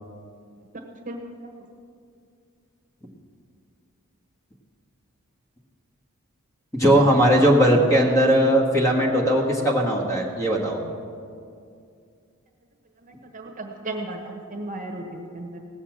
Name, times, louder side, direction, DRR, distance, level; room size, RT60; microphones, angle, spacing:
voice 1, 6.7-10.8, equal, 15° left, 0 dB, 1.6 m, -19 dB
voice 2, 13.3-15.6, right 2 dB, 35° right, 3 dB, 1.2 m, -34 dB
17.5 x 7.1 x 7.3 m, 2.4 s
head